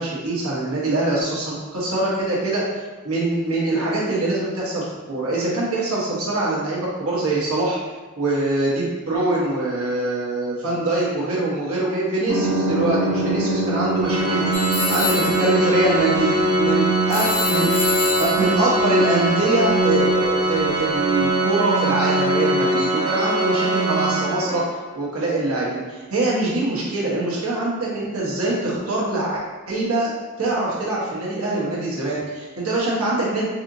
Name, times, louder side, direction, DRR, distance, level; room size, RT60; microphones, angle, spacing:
voice 1, 0.0-2.6 3.0-7.8 8.2-16.8 17.1-17.7 18.2-24.6 24.9-29.4 29.7-30.1 30.4-33.4, right 2 dB, 90° right, -6 dB, 1.2 m, -23 dB
sound 1, 12.3-21.3, right 2 dB, 45° right, 0.8 m, -27 dB
Organ, 14.0-24.8, right 2 dB, 20° right, 0.4 m, -22 dB
sound 2, 14.5-20.0, left 4 dB, 50° left, 0.7 m, -29 dB
4.1 x 2.9 x 2.7 m, 1.3 s
head